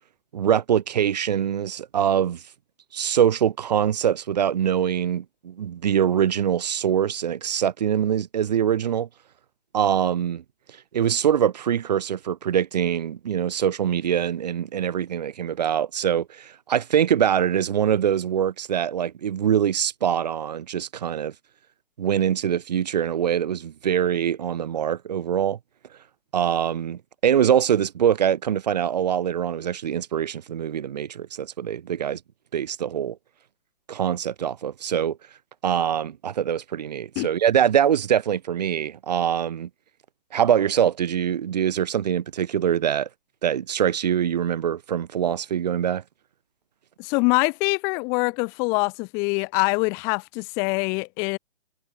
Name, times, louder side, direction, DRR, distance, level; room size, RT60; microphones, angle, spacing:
voice 1, 0.3-2.4 2.9-9.1 9.7-10.4 10.9-21.3 22.0-25.6 26.3-32.2 32.5-33.2 33.9-35.2 35.6-39.7 40.3-43.1 43.4-46.0, right 9 dB, 45° right, 1.1 m, -23 dB
voice 2, 47.0-51.4, left 33 dB, 10° left, 0.7 m, -24 dB
hypercardioid pair, 160°, 30 cm